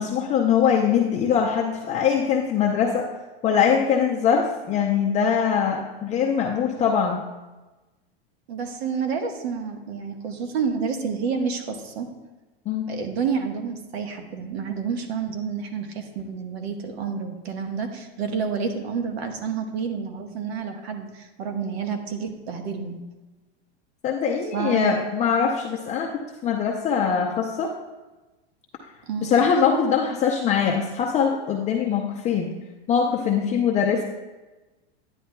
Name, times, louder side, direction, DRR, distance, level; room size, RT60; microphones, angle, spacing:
voice 1, 0.0-3.1 3.4-7.2 12.7-12.9 24.0-26.1 26.4-27.7 29.2-32.5 32.9-34.0, left 7 dB, 20° left, 0 dB, 0.5 m, -22 dB
voice 2, 8.5-12.1 12.9-23.0 24.5-24.9 29.1-29.4, right 6 dB, 75° right, 5 dB, 1.3 m, -29 dB
10.0 x 9.9 x 2.2 m, 1.1 s
supercardioid pair, 145°, 32 cm